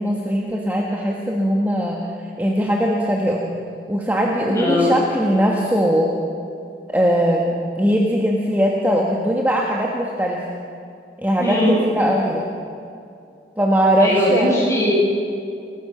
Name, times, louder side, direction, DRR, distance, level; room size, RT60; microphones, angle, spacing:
voice 1, 0.0-3.6 3.9-6.2 6.9-10.5 11.2-12.5 13.6-14.5, equal, 10° right, -2 dB, 1.8 m, -20 dB
voice 2, 4.5-4.9 11.4-11.8 14.0-14.9, left 1 dB, 15° left, -4 dB, 7.6 m, -20 dB
29.0 x 15.5 x 7.1 m, 2.5 s
head